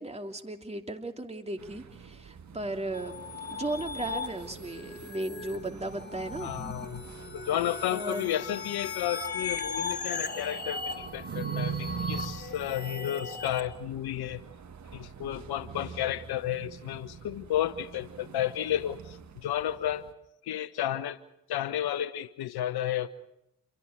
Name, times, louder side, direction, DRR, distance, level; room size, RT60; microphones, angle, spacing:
voice 1, 0.0-3.2 3.5-6.5 7.9-8.4, right 1 dB, 15° right, 4 dB, 2.9 m, -36 dB
sound 1, 1.6-20.1, right 7 dB, 40° right, 1.5 m, -43 dB
sound 2, 2.9-13.6, left 4 dB, 25° left, 4.3 m, -38 dB
voice 2, 6.4-7.0 7.3-14.4 14.9-20.1 20.4-21.2 21.5-23.1, left 12 dB, 65° left, 16 dB, 1.1 m, -32 dB
27.5 x 24.5 x 4.8 m, 0.81 s
hypercardioid pair, 50°, 42 cm